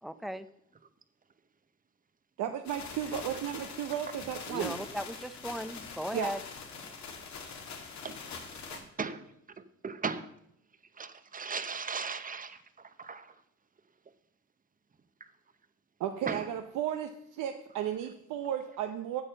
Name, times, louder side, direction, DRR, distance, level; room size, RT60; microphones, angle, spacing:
voice 1, 0.0-0.5 4.5-6.4, equal, ahead, 0.6 m, -37 dB
voice 2, 2.4-4.8 6.1-6.3 16.0-17.1 17.4-19.2, right 10 dB, 85° right, 0.8 m, -34 dB
sound 1, 2.6-8.8, left 5 dB, 65° left, 2.1 m, -43 dB
voice 3, 8.7-9.2 9.8-10.3 11.0-12.6 13.0-13.3 16.3-16.4, right 5 dB, 30° right, 0.9 m, -37 dB
8.7 x 7.3 x 6.7 m
cardioid pair, 90°, 30 cm